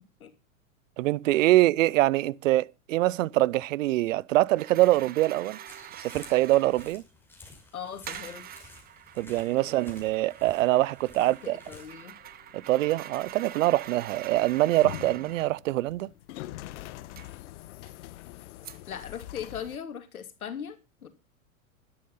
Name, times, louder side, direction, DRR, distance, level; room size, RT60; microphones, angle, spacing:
voice 1, 1.0-5.6 6.0-7.0 9.2-11.6 12.5-16.1, right 16 dB, 65° right, 0.6 m, -24 dB
sound 1, 4.5-7.0 8.1-15.5 17.2-17.3 17.9-18.0 18.6-18.9, right 11 dB, 20° right, 0.8 m, -45 dB
sound 2, 5.7-11.9, left 3 dB, 5° left, 5.6 m, -52 dB
voice 2, 7.7-8.7 9.6-9.7 11.2-12.1 18.9-21.1, left 8 dB, 85° left, 2.6 m, -39 dB
sound 3, 11.4-19.8, left 15 dB, 55° left, 1.2 m, -45 dB
12.0 x 11.5 x 5.5 m
hypercardioid pair, 115°, 42 cm